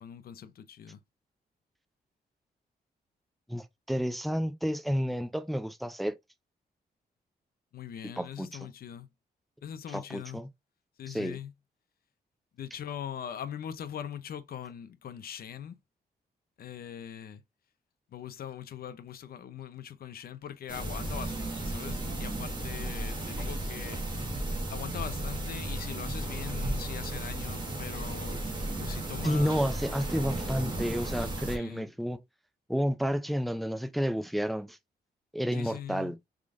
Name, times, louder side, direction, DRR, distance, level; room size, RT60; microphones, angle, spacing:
voice 1, 0.0-1.0 7.7-9.1 9.6-10.4 11.0-11.5 12.6-15.8 16.6-17.4 18.1-24.2 24.7-28.5 28.8-29.7 31.5-31.9 35.5-36.2, left 9 dB, 65° left, 0.7 m, -41 dB
voice 2, 3.5-6.1 8.2-8.5 9.9-10.5 11.1-11.4 29.2-32.2 32.7-34.8 35.3-36.2, equal, ahead, 0.4 m, -30 dB
sound 1, 20.7-31.6, right 1 dB, 30° right, 1.5 m, -34 dB
4.7 x 3.7 x 2.5 m
wide cardioid pair, 135°, 17 cm